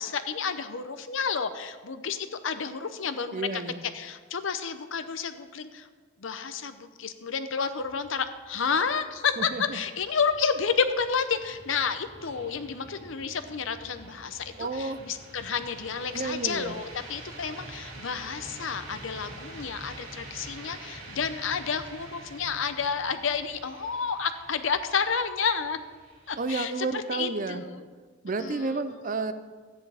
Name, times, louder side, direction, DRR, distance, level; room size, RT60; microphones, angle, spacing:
voice 1, 0.0-3.6 3.9-5.9 6.2-25.8 26.3-26.7 27.1-27.8 28.4-28.8, left 6 dB, 70° left, 10 dB, 0.7 m, -30 dB
voice 2, 3.3-3.8 9.4-9.8 14.6-15.0 16.1-16.7 26.4-27.6 28.2-29.3, right 3 dB, 40° right, 11 dB, 0.5 m, -31 dB
sound 1, 7.6-26.6, right 2 dB, 85° right, 2.7 m, -47 dB
14.0 x 9.8 x 3.5 m, 1.5 s
head